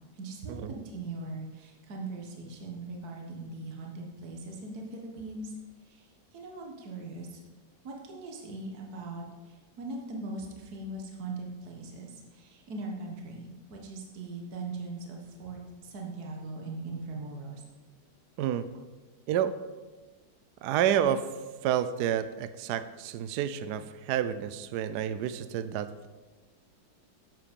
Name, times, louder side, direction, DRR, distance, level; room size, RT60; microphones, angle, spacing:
voice 1, 0.2-0.6 0.9-5.5 6.3-7.4 7.8-9.2 9.8-12.1 12.4-17.6, right 2 dB, 55° right, 0 dB, 1.9 m, -40 dB
voice 2, 19.3-19.6 20.6-21.3 21.6-26.1, right 10 dB, 70° right, 12 dB, 1.1 m, -29 dB
11.0 x 7.6 x 5.3 m, 1.3 s
omnidirectional pair, 2.0 m